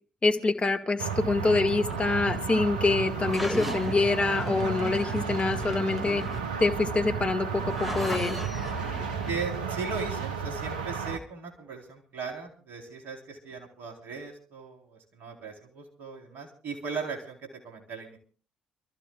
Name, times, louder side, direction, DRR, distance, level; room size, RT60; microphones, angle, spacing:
voice 1, 0.2-6.3 6.6-8.4, left 3 dB, 30° left, 6 dB, 2.0 m, -26 dB
sound 1, 1.0-11.2, right 6 dB, 85° right, 0.9 m, -33 dB
sound 2, 1.7-9.4, left 1 dB, ahead, 2.2 m, -38 dB
voice 2, 9.2-18.2, right 4 dB, 60° right, 3 dB, 4.1 m, -38 dB
29.5 x 14.5 x 2.4 m, 0.39 s
figure-of-eight pair, 45°, 4 cm